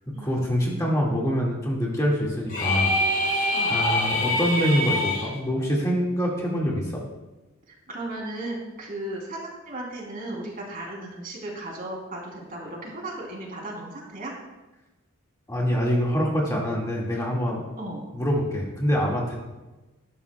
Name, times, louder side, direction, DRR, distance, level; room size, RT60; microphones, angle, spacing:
voice 1, 0.2-7.0 15.5-17.6 18.1-19.4, equal, 15° left, -4 dB, 2.0 m, -25 dB
sound 1, 2.5-5.3, left 1 dB, 40° left, 3.7 m, -24 dB
voice 2, 7.7-14.3 17.8-18.1, right 1 dB, 40° right, -2 dB, 3.3 m, -36 dB
19.5 x 11.5 x 2.3 m, 1.1 s
head